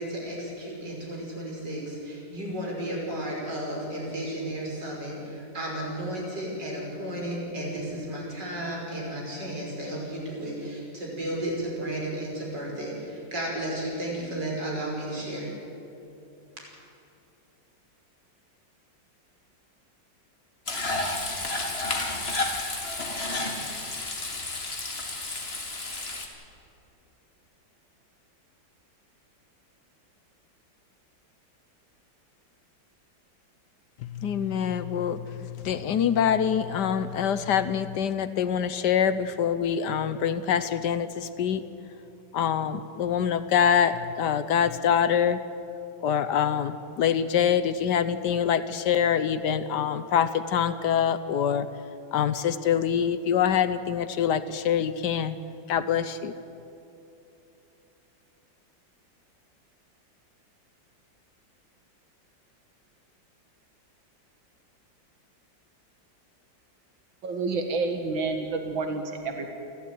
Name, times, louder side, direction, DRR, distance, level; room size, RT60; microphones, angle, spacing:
voice 1, 0.0-15.5, right 1 dB, 65° right, -2 dB, 6.4 m, -33 dB
Frying (food), 20.7-26.3, left 2 dB, 30° left, 2.4 m, -31 dB
voice 2, 34.0-41.6 42.3-45.4 46.0-51.7 52.1-55.3 55.7-56.3, left 8 dB, 70° left, 13 dB, 1.3 m, -25 dB
voice 3, 67.2-69.5, right 3 dB, 85° right, 4 dB, 2.4 m, -29 dB
28.5 x 12.5 x 9.4 m, 2.9 s
omnidirectional pair, 2.0 m